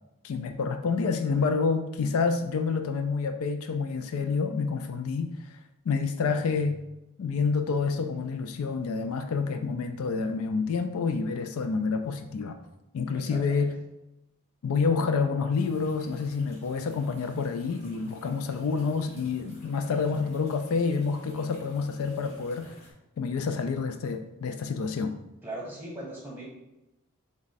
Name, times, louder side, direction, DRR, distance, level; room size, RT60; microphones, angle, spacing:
voice 1, 0.2-5.6 5.9-6.8 7.2-12.6 12.9-13.7 14.6-22.7 23.2-25.1, left 5 dB, 75° left, 7 dB, 0.3 m, -28 dB
voice 2, 13.1-13.7 22.2-22.3 25.4-26.4, right 1 dB, 10° right, -5 dB, 1.1 m, -40 dB
sound 1, 15.5-22.9, left 1 dB, 30° left, 1.3 m, -54 dB
3.5 x 3.1 x 4.0 m, 0.94 s
head